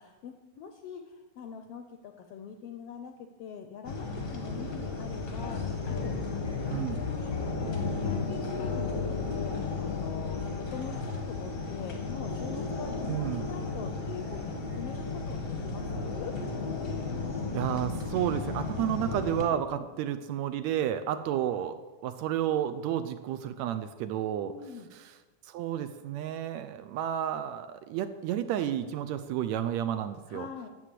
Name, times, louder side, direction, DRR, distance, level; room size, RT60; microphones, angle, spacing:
voice 1, 0.0-6.4 6.7-7.3 8.0-16.3 19.7-19.9 24.4-24.9 30.3-30.7, left 6 dB, 75° left, 6 dB, 1.4 m, -43 dB
sound 1, 3.8-19.5, left 3 dB, 45° left, 0.7 m, -34 dB
sound 2, 5.4-11.2, left 7 dB, 60° left, 1.0 m, -37 dB
voice 2, 13.1-13.5 17.5-21.8 22.0-24.5 25.0-25.1 25.5-30.5, right 10 dB, 80° right, 9 dB, 1.7 m, -31 dB
9.9 x 7.8 x 7.5 m, 1.3 s
omnidirectional pair, 3.4 m